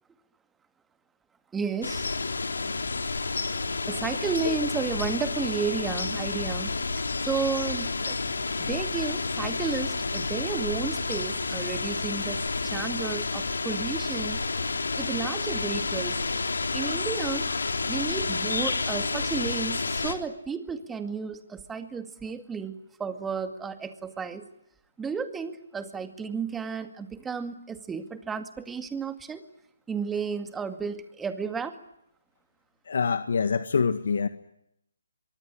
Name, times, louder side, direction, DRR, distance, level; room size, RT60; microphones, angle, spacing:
voice 1, 1.5-2.2 3.2-3.3 3.9-6.7 7.2-8.2 8.6-14.4 15.0-16.2 16.7-17.5 17.9-24.5 25.0-29.4 29.9-31.8, right 5 dB, 10° right, 9 dB, 2.2 m, -33 dB
Forest Aspen Dawn Wind Ligh, 1.8-20.2, left 3 dB, 80° left, 3.8 m, -30 dB
voice 2, 32.9-34.3, left 5 dB, 65° left, 10 dB, 1.8 m, -25 dB
24.5 x 23.5 x 10.0 m, 0.76 s
hypercardioid pair, 150°, 0 cm